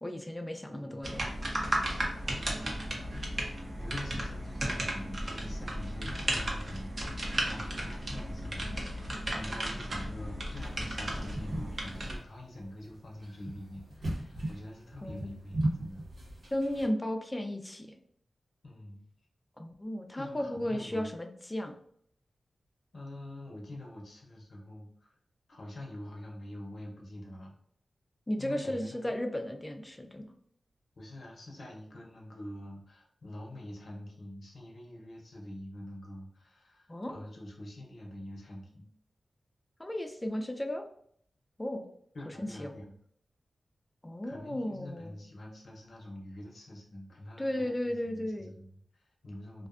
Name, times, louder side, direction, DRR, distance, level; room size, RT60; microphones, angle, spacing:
voice 1, 0.0-1.2 15.0-15.4 16.5-18.0 19.6-21.8 28.3-30.3 36.9-37.2 39.8-40.8 41.6-41.8 42.4-42.7 44.0-45.1 47.4-48.5, left 1 dB, 20° left, 5 dB, 0.4 m, -35 dB
voice 2, 0.7-1.0 2.1-16.0 18.6-19.0 20.2-21.1 22.9-25.1 25.5-27.5 28.4-29.1 31.0-38.9 42.1-42.9 44.3-49.7, left 1 dB, 70° left, -1 dB, 0.7 m, -46 dB
sound 1, 1.0-12.2, right 1 dB, 50° right, 0.6 m, -34 dB
sound 2, 10.6-16.9, right 1 dB, 75° right, 1.0 m, -37 dB
2.5 x 2.2 x 2.4 m, 0.65 s
wide cardioid pair, 70°, 0 cm